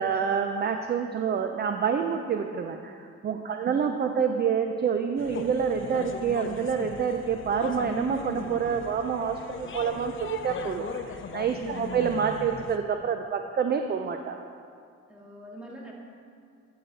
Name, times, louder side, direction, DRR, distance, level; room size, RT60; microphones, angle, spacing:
voice 1, 0.0-14.4, right 6 dB, 35° right, 6 dB, 0.4 m, -27 dB
voice 2, 3.4-3.8 11.5-11.9 15.1-15.9, right 1 dB, 5° right, -4 dB, 1.9 m, -44 dB
sound 1, 5.2-12.8, left 5 dB, 40° left, 0.6 m, -39 dB
10.0 x 5.9 x 4.0 m, 2.3 s
cardioid pair, 90°, 30 cm